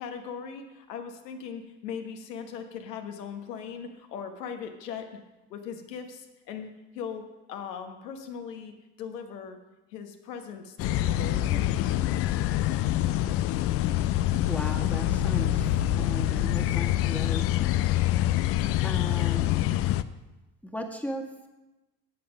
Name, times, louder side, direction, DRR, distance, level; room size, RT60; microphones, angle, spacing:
voice 1, 0.0-5.2 5.5-9.6 9.9-11.8, left 7 dB, 70° left, 5 dB, 1.4 m, -39 dB
sound 1, 10.8-20.0, left 13 dB, 30° left, 0.4 m, -25 dB
voice 2, 14.5-15.7 15.9-17.8 18.8-19.6 20.6-21.5, equal, 5° left, 2 dB, 1.6 m, -37 dB
10.5 x 8.7 x 5.3 m, 1.0 s
figure-of-eight pair, 60°, 50 cm